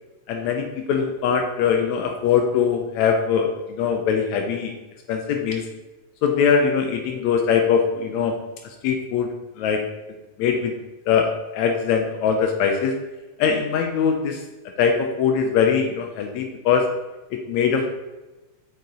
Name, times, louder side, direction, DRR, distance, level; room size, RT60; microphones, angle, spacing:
voice 1, 0.3-4.7 5.1-5.7 6.2-8.4 8.8-9.8 10.4-10.8 11.1-11.3 11.5-13.0 13.4-14.4 14.8-16.9 17.3-17.9, left 6 dB, 80° left, 4 dB, 1.9 m, -21 dB
6.6 x 6.5 x 4.2 m, 1.1 s
omnidirectional pair, 3.4 m